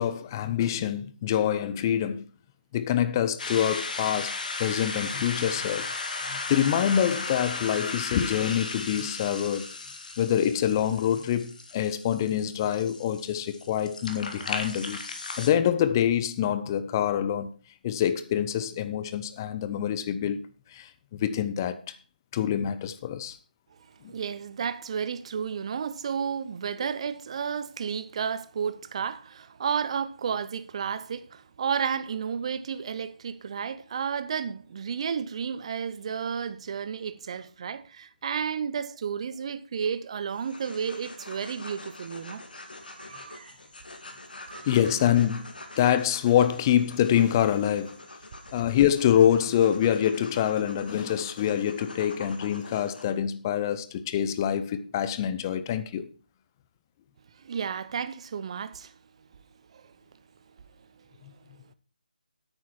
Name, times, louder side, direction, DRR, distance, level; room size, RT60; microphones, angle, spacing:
voice 1, 0.0-2.2 2.7-5.9 6.3-9.7 10.2-15.0 15.4-17.5 17.8-20.5 20.7-22.0 22.3-23.4 44.7-48.0 48.5-56.1 61.2-61.3, left 10 dB, 25° left, 0.7 m, -25 dB
sound 1, 3.4-15.5, left 3 dB, 55° left, 2.1 m, -35 dB
voice 2, 23.9-42.4 42.9-43.6 44.5-44.7 57.3-59.0 59.7-59.9 61.0-61.1, right 7 dB, 40° right, 0.7 m, -32 dB
sound 2, 40.3-53.1, left 2 dB, 70° left, 2.5 m, -45 dB
10.0 x 8.9 x 4.4 m
figure-of-eight pair, 150°, 5 cm